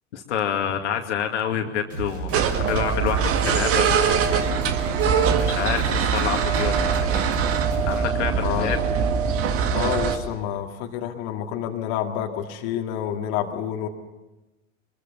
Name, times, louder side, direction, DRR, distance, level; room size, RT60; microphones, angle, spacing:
voice 1, 0.1-4.4 5.4-7.3 7.8-8.8, left 8 dB, 65° left, 4 dB, 2.3 m, -28 dB
sound 1, 1.9-8.1, right 4 dB, 75° right, 7.4 m, -32 dB
sound 2, 2.3-10.2, right 6 dB, 35° right, 1.9 m, -23 dB
voice 2, 8.3-8.8 9.7-13.9, left 10 dB, 45° left, 2 dB, 2.2 m, -28 dB
24.0 x 21.5 x 7.0 m, 1.1 s
figure-of-eight pair, 85°, 38 cm